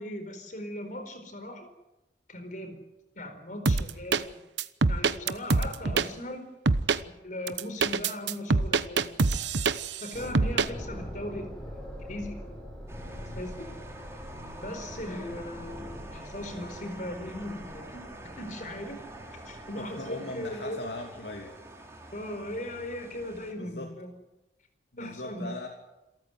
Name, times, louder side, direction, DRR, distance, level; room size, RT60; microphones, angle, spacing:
voice 1, 0.0-1.7 2.3-2.8 3.1-4.4 4.9-6.4 7.0-9.4 9.9-11.8 12.1-12.3 13.3-13.7 14.6-18.0 18.4-19.0 19.4-20.8 22.1-24.1 25.0-25.5, left 1 dB, 45° left, 8 dB, 4.5 m, -38 dB
sound 1, 3.6-4.2 4.6-6.1 6.7-7.0 7.5-10.0 10.3-10.7, right 4 dB, 80° right, 0.9 m, -24 dB
sound 2, 10.1-19.8, equal, 5° left, 6.9 m, -44 dB
sound 3, 12.9-23.5, right 1 dB, 15° right, 4.0 m, -45 dB
voice 2, 19.7-21.5 23.6-23.9 24.9-25.7, left 2 dB, 75° left, 1 dB, 2.8 m, -39 dB
28.5 x 13.5 x 9.5 m, 0.97 s
head